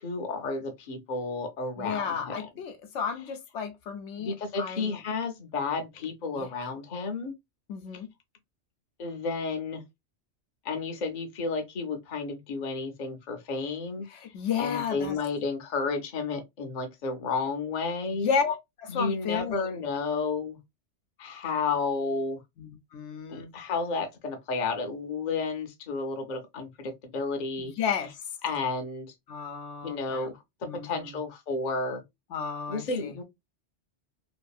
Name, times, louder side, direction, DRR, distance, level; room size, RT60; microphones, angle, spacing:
voice 1, 0.0-2.3 4.2-7.3 9.0-9.8 10.6-14.1 14.6-18.3 18.9-20.6 21.2-22.4 23.3-27.7 28.4-29.1 29.8-30.4 30.8-32.0 32.7-33.2, left 4 dB, 45° left, 0.7 m, -32 dB
voice 2, 1.8-5.0 6.3-6.5 7.7-8.1 14.1-15.2 18.1-19.7 22.6-23.5 27.6-28.2 29.3-30.3 30.6-31.2 32.3-33.2, left 6 dB, 85° left, 1.0 m, -33 dB
2.7 x 2.5 x 2.3 m
omnidirectional pair, 1.2 m